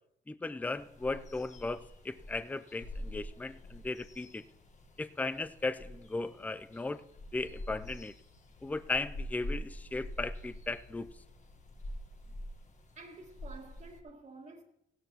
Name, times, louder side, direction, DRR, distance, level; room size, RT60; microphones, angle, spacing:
voice 1, 0.3-4.4 5.0-7.0 7.3-8.1 8.6-11.1, left 3 dB, 10° left, 0.4 m, -36 dB
sound 1, 0.6-14.0, left 1 dB, 35° left, 1.3 m, -46 dB
voice 2, 13.0-14.6, right 3 dB, 40° right, 1.8 m, -50 dB
16.0 x 12.5 x 3.0 m
cardioid pair, 90°, 20 cm